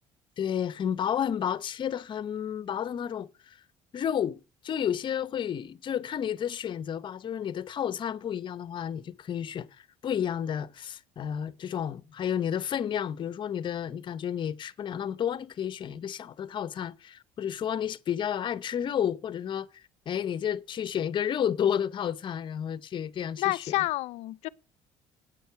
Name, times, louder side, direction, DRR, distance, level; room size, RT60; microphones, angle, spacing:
voice 1, 0.4-3.6 3.9-19.7 20.1-23.6, left 9 dB, 45° left, 0.8 m, -31 dB
voice 2, 23.4-24.5, left 18 dB, 75° left, 0.6 m, -29 dB
9.2 x 7.9 x 5.7 m
cardioid pair, 105°, 11 cm